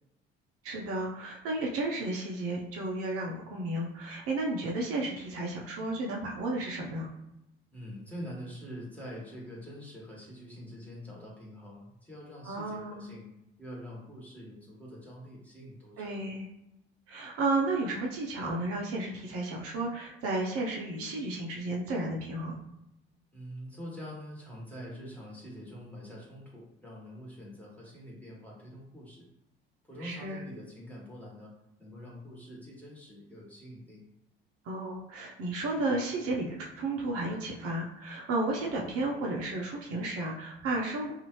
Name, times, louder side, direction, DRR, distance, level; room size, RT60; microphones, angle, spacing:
voice 1, 0.6-7.1 12.4-13.1 16.0-16.5 17.1-22.5 30.0-30.4 34.6-41.1, right 2 dB, 50° right, -2 dB, 0.7 m, -33 dB
voice 2, 7.7-13.3 13.6-16.1 23.3-29.3 29.9-31.5 31.8-34.0, equal, 5° left, -5 dB, 1.4 m, -45 dB
2.6 x 2.4 x 3.0 m, 0.86 s
figure-of-eight pair, 55°, 29 cm